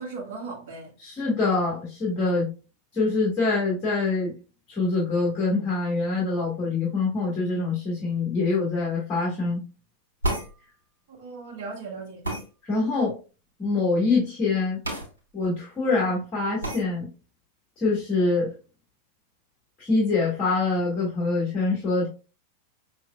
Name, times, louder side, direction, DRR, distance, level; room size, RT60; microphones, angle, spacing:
voice 1, 0.0-0.9 11.2-12.3, right 4 dB, 50° right, 1.6 m, -37 dB
voice 2, 1.0-2.5 2.9-4.3 4.7-9.6 12.6-13.1 13.6-14.8 15.3-17.1 17.8-18.5 19.8-22.1, left 3 dB, 25° left, 1.9 m, -25 dB
sound 1, 10.2-10.5 12.2-12.5 14.8-15.1 15.4-15.5 16.6-16.8, right 1 dB, 75° right, 1.7 m, -28 dB
5.9 x 3.2 x 2.3 m
figure-of-eight pair, 90°, 0 cm